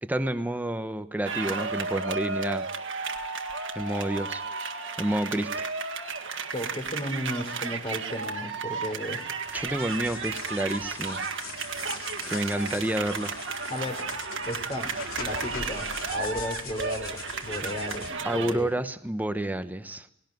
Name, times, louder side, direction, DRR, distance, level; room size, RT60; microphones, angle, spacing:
voice 1, 0.0-2.7 3.8-4.4 5.0-5.7 9.5-11.2 12.3-13.3 18.2-20.1, right 1 dB, 10° right, 10 dB, 0.9 m, -29 dB
sound 1, 1.3-18.5, right 4 dB, 65° right, 1.7 m, -33 dB
voice 2, 6.5-9.2 13.7-14.0 14.5-14.9 15.2-18.7, equal, 30° left, 5 dB, 3.8 m, -34 dB
sound 2, 9.5-18.1, left 4 dB, 80° left, 2.7 m, -41 dB
19.5 x 17.5 x 9.2 m, 0.78 s
head